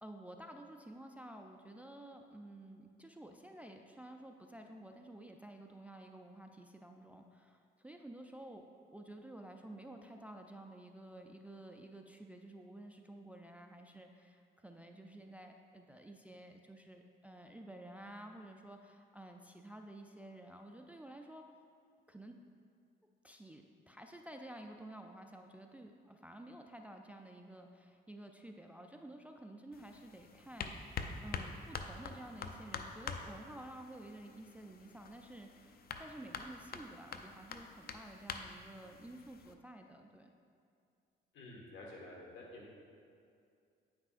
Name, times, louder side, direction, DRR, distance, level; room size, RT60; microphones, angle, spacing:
voice 1, 0.0-8.6 8.9-21.4 22.1-22.4 23.2-40.3, right 1 dB, 5° right, 3 dB, 0.3 m, -52 dB
sound 1, 29.7-39.5, left 5 dB, 50° left, 0.5 m, -46 dB
voice 2, 41.3-42.7, left 2 dB, 70° left, -3 dB, 1.6 m, -50 dB
8.9 x 6.0 x 2.5 m, 2.3 s
cardioid pair, 90°, 20 cm